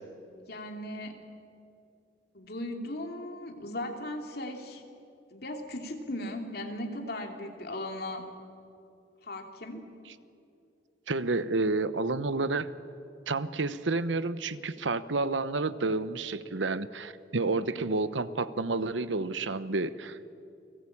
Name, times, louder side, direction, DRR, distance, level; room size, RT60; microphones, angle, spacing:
voice 1, 0.4-1.2 2.3-4.8 5.3-8.3 9.2-9.8, left 1 dB, 55° left, 3 dB, 2.9 m, -37 dB
voice 2, 11.1-12.7 13.3-20.3, right 3 dB, 85° right, 14 dB, 1.0 m, -30 dB
29.5 x 19.0 x 8.6 m, 2.6 s
head